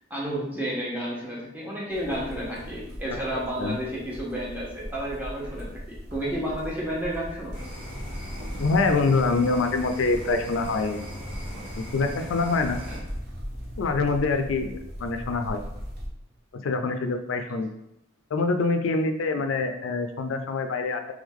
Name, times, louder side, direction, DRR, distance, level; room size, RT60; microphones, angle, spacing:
voice 1, 0.1-7.6 12.9-13.0, right 1 dB, 10° right, -5 dB, 1.1 m, -31 dB
sound 1, 1.9-16.1, equal, 50° right, 0.9 m, -39 dB
voice 2, 3.3-3.8 8.6-11.0 11.8-12.8 13.8-15.6 16.5-17.7 18.3-21.1, left 3 dB, 85° left, 7 dB, 0.4 m, -25 dB
sound 2, 7.5-13.0, equal, 25° right, 1.4 m, -39 dB
3.5 x 3.2 x 3.6 m, 0.83 s
head